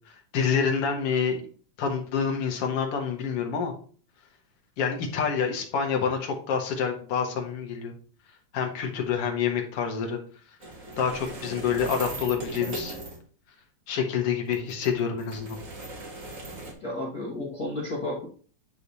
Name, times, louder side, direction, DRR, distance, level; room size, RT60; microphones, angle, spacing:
voice 1, 0.3-1.4 1.8-3.7 4.8-7.9 8.5-10.2 11.0-12.9 13.9-15.6, left 6 dB, 60° left, 3 dB, 1.8 m, -27 dB
sound 1, 10.6-13.2 14.4-16.7, right 2 dB, 45° right, 1.0 m, -39 dB
voice 2, 16.8-18.3, left 1 dB, 40° left, -5 dB, 1.5 m, -32 dB
9.8 x 3.3 x 4.1 m, 0.42 s
omnidirectional pair, 3.6 m